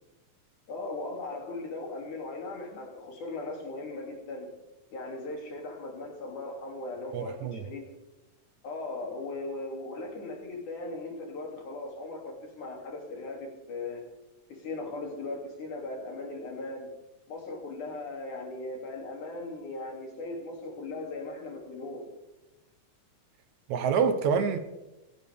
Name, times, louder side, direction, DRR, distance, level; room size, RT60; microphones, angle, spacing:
voice 1, 0.7-4.5 4.9-7.9 8.6-14.0 14.5-16.9 17.3-22.1, left 2 dB, 85° left, 4.6 m, -38 dB
voice 2, 7.1-7.6 23.7-24.6, right 6 dB, 75° right, 2.4 m, -26 dB
18.0 x 15.5 x 3.7 m
omnidirectional pair, 3.4 m